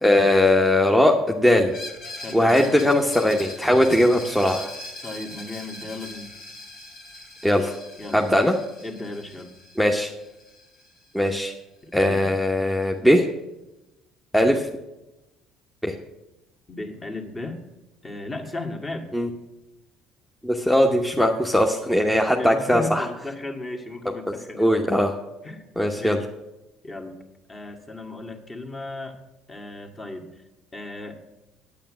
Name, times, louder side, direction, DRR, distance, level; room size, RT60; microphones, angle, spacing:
voice 1, 0.0-1.7 2.3-4.7 7.4-7.8 8.1-8.6 9.8-10.1 11.1-11.5 11.9-13.3 14.3-14.6 15.8-15.9 19.1-19.3 20.4-23.1 24.6-25.2 25.8-26.2, left 1 dB, 5° left, 1 dB, 1.0 m, -19 dB
Screech, 1.7-11.3, left 2 dB, 75° left, 2.4 m, -41 dB
voice 2, 2.2-2.7 5.0-6.3 8.0-8.2 8.8-9.5 11.8-12.3 14.4-14.6 16.7-17.6 18.0-19.1 22.3-24.8 25.4-26.2 26.8-27.2 27.5-29.2 29.5-30.2 30.7-31.3, left 2 dB, 25° left, 3 dB, 1.7 m, -35 dB
9.0 x 8.5 x 6.2 m, 0.98 s
hypercardioid pair, 70°, 0 cm